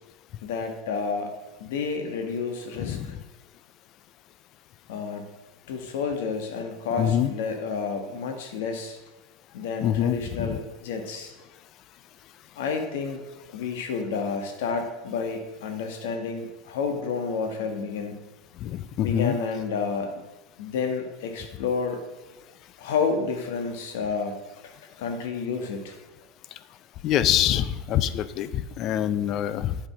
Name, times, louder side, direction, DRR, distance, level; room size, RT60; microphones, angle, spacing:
voice 1, 0.4-1.3 1.6-3.1 4.9-5.3 5.7-9.0 9.5-11.3 12.5-13.2 13.5-18.2 19.0-20.2 20.6-22.0 22.8-24.4 25.0-25.9, left 5 dB, 75° left, 5 dB, 1.6 m, -30 dB
voice 2, 7.0-7.3 9.8-10.6 18.6-19.4 27.0-29.8, left 11 dB, 35° left, 15 dB, 0.5 m, -25 dB
8.7 x 5.5 x 6.0 m, 1.1 s
supercardioid pair, 155°, 0 cm